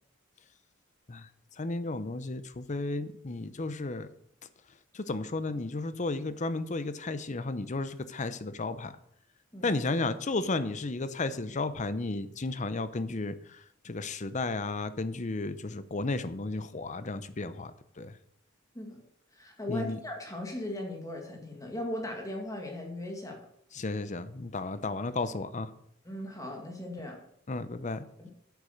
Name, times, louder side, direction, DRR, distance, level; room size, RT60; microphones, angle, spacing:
voice 1, 1.6-4.1 4.9-8.9 9.6-13.6 13.8-18.1 19.7-20.0 23.7-25.7 27.5-28.1, left 3 dB, 40° left, 13 dB, 0.7 m, -33 dB
voice 2, 19.3-23.5 26.1-27.2 28.2-28.3, left 1 dB, 15° left, 2 dB, 2.0 m, -38 dB
8.4 x 8.2 x 6.6 m, 0.71 s
head